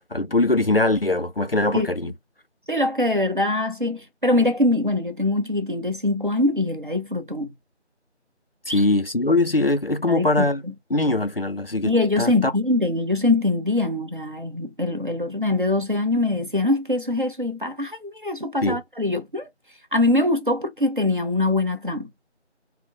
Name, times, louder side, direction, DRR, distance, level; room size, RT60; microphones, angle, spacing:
voice 1, 0.1-2.1 8.7-10.6 10.9-12.5 18.6-18.8, left 2 dB, 55° left, 0.4 m, -22 dB
voice 2, 2.7-7.5 8.7-8.8 10.1-10.7 11.8-19.5 19.9-22.1, left 2 dB, 45° right, 0.7 m, -23 dB
3.8 x 2.0 x 3.9 m
figure-of-eight pair, 175°, 35 cm